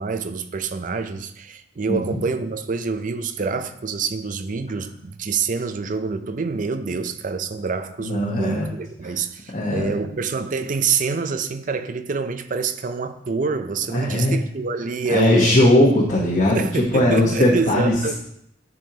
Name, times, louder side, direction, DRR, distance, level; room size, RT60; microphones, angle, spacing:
voice 1, 0.0-15.7 16.5-18.1, right 4 dB, 45° right, 0.5 m, -26 dB
voice 2, 1.9-2.2 8.0-8.7 9.0-9.1 9.5-9.9 13.9-14.4 15.1-18.1, left 1 dB, 45° left, 1.1 m, -19 dB
10.5 x 5.3 x 2.9 m
head